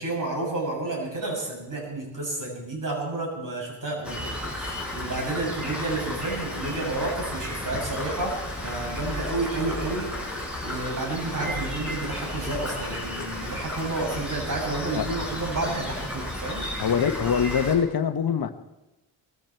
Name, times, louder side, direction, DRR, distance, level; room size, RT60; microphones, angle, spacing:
voice 1, 0.0-8.3 8.6-16.7, right 2 dB, 45° right, 7.7 m, -31 dB
Rain, 4.0-17.7, left 1 dB, ahead, 7.0 m, -33 dB
voice 2, 16.8-18.5, left 7 dB, 50° left, 1.2 m, -23 dB
20.5 x 14.5 x 4.6 m
cardioid pair, 80°, 45 cm